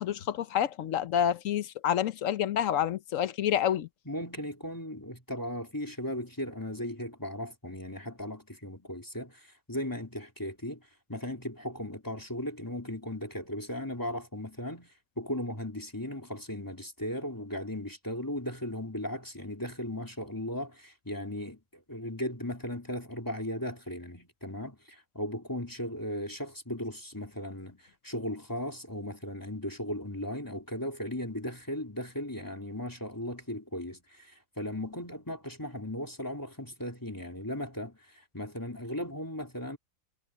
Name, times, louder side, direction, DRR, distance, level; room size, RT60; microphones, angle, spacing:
voice 1, 0.0-3.9, left 10 dB, 70° left, 1.1 m, -28 dB
voice 2, 4.0-39.8, left 1 dB, 15° left, 3.3 m, -37 dB
omnidirectional pair, 1.5 m